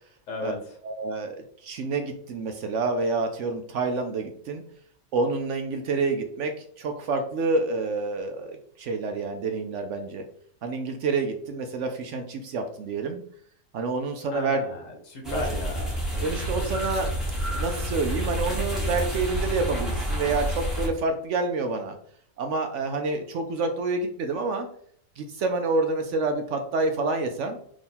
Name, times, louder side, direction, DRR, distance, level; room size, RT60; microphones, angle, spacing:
voice 1, 0.3-0.7 14.3-15.9, left 2 dB, 60° left, 2 dB, 1.4 m, -34 dB
voice 2, 0.8-4.6 5.1-10.2 10.6-13.2 13.7-14.6 15.3-15.4 16.2-17.1 17.5-22.0 22.4-24.7 25.2-27.6, right 3 dB, 65° right, 6 dB, 0.8 m, -28 dB
sound 1, 15.2-20.9, equal, ahead, 1.2 m, -29 dB
3.6 x 3.0 x 4.2 m, 0.63 s
omnidirectional pair, 1.5 m